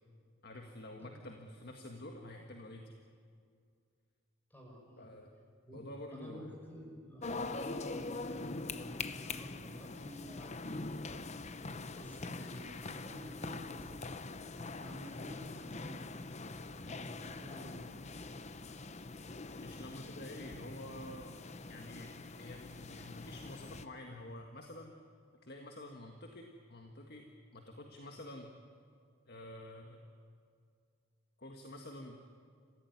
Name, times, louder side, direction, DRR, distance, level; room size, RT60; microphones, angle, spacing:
voice 1, 0.4-2.9 5.0-5.3 5.7-6.5 19.6-21.3 21.7-24.9 25.4-28.5 29.3-30.1 31.4-32.2, left 1 dB, 50° left, 3 dB, 1.8 m, -49 dB
voice 2, 4.5-5.1 5.6-5.8 6.1-10.8 11.9-14.0 14.8-16.0 16.8-17.8, equal, 10° left, -1 dB, 5.8 m, -51 dB
sound 1, 7.2-23.9, left 3 dB, 35° left, 0.8 m, -43 dB
27.0 x 15.5 x 9.7 m, 2.2 s
head